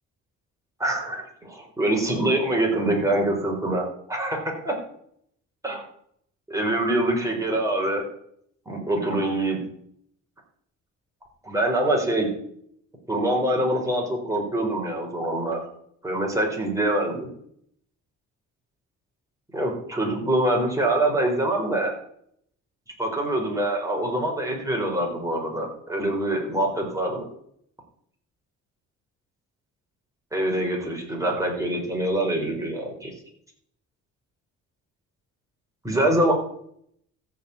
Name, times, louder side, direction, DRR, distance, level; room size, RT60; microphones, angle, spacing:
voice 1, 0.8-4.4 4.6-4.7 5.6-5.8 6.5-8.0 8.7-9.6 11.4-12.3 13.1-15.6 16.0-17.3 19.5-21.9 23.0-27.3 30.3-33.1 35.8-36.3, right 1 dB, 10° right, 0 dB, 4.8 m, -24 dB
14.0 x 5.4 x 8.5 m, 0.70 s
cardioid pair, 90°, 30 cm